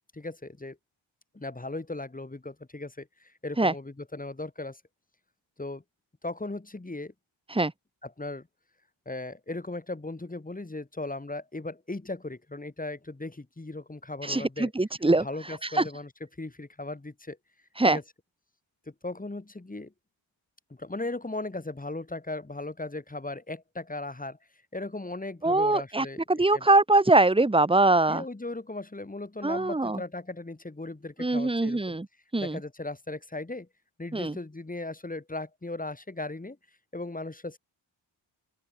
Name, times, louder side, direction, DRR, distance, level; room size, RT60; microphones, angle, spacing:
voice 1, 0.1-0.8 1.3-4.8 5.6-5.8 6.2-7.1 8.0-8.5 9.0-14.7 15.2-16.1 16.4-17.4 17.8-18.0 18.9-19.9 20.7-24.4 24.7-26.6 28.1-32.0 32.4-33.7 34.0-36.6 36.9-37.6, left 2 dB, 15° left, 6.6 m, -37 dB
voice 2, 14.3-15.3 15.8-15.9 17.8-18.0 25.4-28.2 29.4-30.0 31.2-32.1 32.3-32.6 34.1-34.3, right 2 dB, 10° right, 1.8 m, -22 dB
open air
wide cardioid pair, 175°, 48 cm